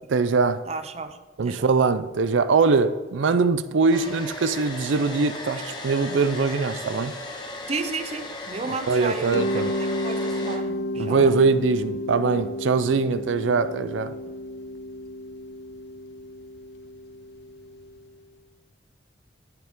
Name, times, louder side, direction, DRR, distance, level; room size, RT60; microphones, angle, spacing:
voice 1, 0.1-0.6 1.4-7.1 8.9-9.7 11.0-14.1, right 4 dB, 85° right, 0.5 m, -22 dB
voice 2, 0.7-1.2 1.4-1.6 4.0-4.2 7.7-11.3, right 3 dB, 35° right, 0.5 m, -33 dB
Domestic sounds home sounds, 3.9-10.6, left 1 dB, 20° left, 1.2 m, -36 dB
Mallet percussion, 9.3-18.1, left 1 dB, 55° left, 0.4 m, -32 dB
11.0 x 7.6 x 3.7 m
head